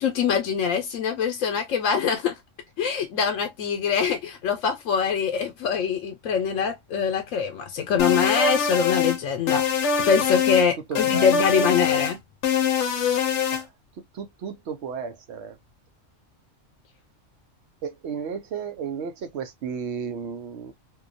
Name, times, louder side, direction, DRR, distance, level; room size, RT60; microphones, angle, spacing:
voice 1, 0.0-2.4 2.8-12.2, left 7 dB, 90° left, 1.0 m, -24 dB
sound 1, 8.0-9.2 9.5-10.7 11.0-12.1 12.4-13.6, left 6 dB, 65° left, 0.9 m, -23 dB
voice 2, 10.9-11.3 13.5-13.7 14.1-15.6 17.8-20.7, right 6 dB, 65° right, 0.9 m, -33 dB
2.7 x 2.3 x 2.4 m
omnidirectional pair, 1.3 m